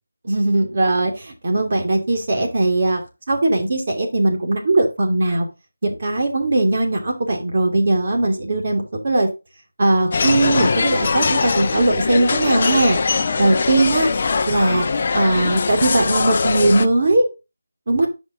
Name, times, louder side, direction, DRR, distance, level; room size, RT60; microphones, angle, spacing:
voice 1, 0.2-3.0 3.3-5.5 5.8-9.3 9.8-14.1 14.5-14.9 15.1-17.3 17.9-18.1, right 2 dB, 45° right, 2 dB, 2.9 m, -19 dB
sound 1, 10.1-16.9, left 4 dB, 40° left, 0.7 m, -21 dB
10.5 x 5.4 x 3.8 m, 0.27 s
figure-of-eight pair, 160°, 0 cm